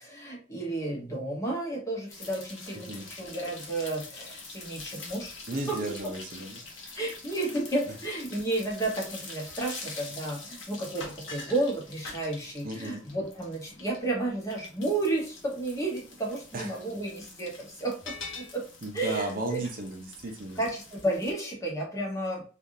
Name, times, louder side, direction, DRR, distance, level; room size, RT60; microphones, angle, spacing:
voice 1, 0.0-5.4 5.7-5.8 6.0-6.1 6.9-18.6 18.9-19.6 20.6-22.4, right 2 dB, 15° left, -2 dB, 1.0 m, -32 dB
sound 1, 2.1-21.3, left 3 dB, 75° left, 0.9 m, -45 dB
voice 2, 2.7-3.1 5.5-7.0 7.9-8.0 12.6-13.0 16.5-16.8 18.8-20.6, right 2 dB, 45° right, 2 dB, 0.5 m, -35 dB
3.4 x 2.4 x 2.6 m, 0.37 s
head